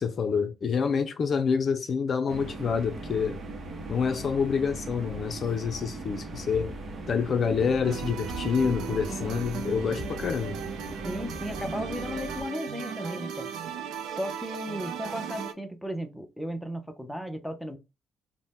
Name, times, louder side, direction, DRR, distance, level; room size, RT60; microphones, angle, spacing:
voice 1, 0.0-3.4 3.9-6.7 7.1-10.6, left 6 dB, 50° left, 0.4 m, -27 dB
sound 1, 2.3-12.4, right 2 dB, 50° right, 0.7 m, -39 dB
sound 2, 6.5-7.6 8.3-9.3 10.0-11.1, left 2 dB, 25° right, 1.5 m, -45 dB
sound 3, 7.8-15.5, right 7 dB, 85° right, 0.4 m, -37 dB
voice 2, 11.0-13.5 14.1-17.8, equal, ahead, 0.6 m, -35 dB
2.7 x 2.1 x 3.3 m
cardioid pair, 90°, 0 cm